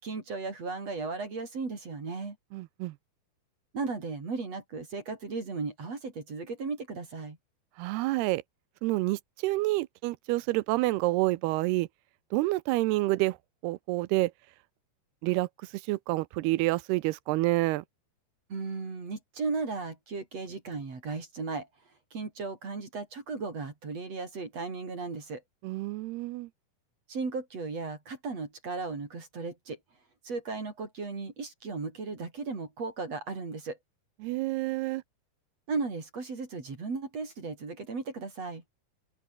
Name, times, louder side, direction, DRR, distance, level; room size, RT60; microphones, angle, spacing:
voice 1, 0.0-2.4 3.7-7.4 18.5-21.7 22.1-25.4 27.1-29.8 30.2-33.8 35.7-38.6, right 4 dB, 40° right, 5.3 m, -36 dB
voice 2, 2.5-3.0 7.8-8.4 8.8-11.9 12.3-13.4 13.6-14.3 15.2-17.8 25.6-26.5 34.2-35.0, right 19 dB, 85° right, 2.7 m, -28 dB
open air
omnidirectional pair, 4.6 m